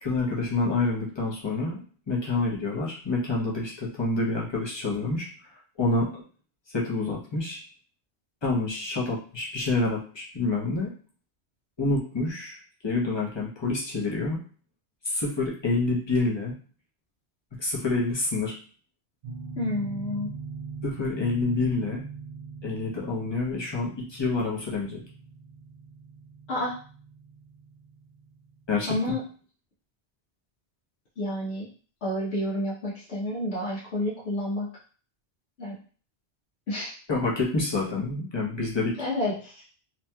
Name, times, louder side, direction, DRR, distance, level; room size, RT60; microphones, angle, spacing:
voice 1, 0.0-1.8 2.1-5.3 5.8-6.2 6.7-7.6 8.4-10.9 11.8-14.4 15.0-16.5 17.6-18.5 20.8-22.0 22.6-25.0 28.7-28.9 37.1-38.9, left 3 dB, 30° left, -4 dB, 0.7 m, -27 dB
sound 1, 19.2-28.8, right 5 dB, 55° right, 0.7 m, -42 dB
voice 2, 19.6-20.3 26.5-26.8 28.9-29.2 31.2-31.7 32.0-34.7 35.6-35.7 36.7-36.9 39.0-39.6, left 1 dB, 80° left, -6 dB, 1.1 m, -29 dB
2.8 x 2.7 x 2.2 m, 0.40 s
omnidirectional pair, 1.1 m